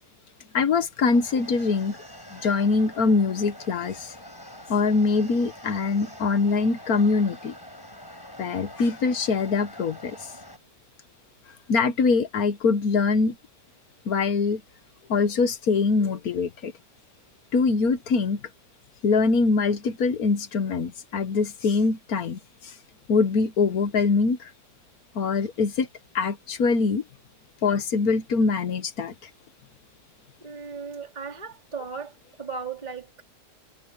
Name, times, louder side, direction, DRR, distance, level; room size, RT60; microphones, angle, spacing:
voice 1, 0.5-2.0 2.3-4.1 4.7-7.5 8.4-10.2 11.7-13.4 14.0-14.6 15.1-16.7 17.5-18.4 19.0-22.7 23.1-24.5 25.1-25.9 26.1-27.0 27.6-29.1, left 4 dB, 65° left, 1.6 m, -23 dB
sound 1, 1.1-10.6, left 1 dB, 15° left, 6.7 m, -45 dB
voice 2, 30.4-33.2, right 5 dB, 25° right, 2.9 m, -36 dB
omnidirectional pair, 1.7 m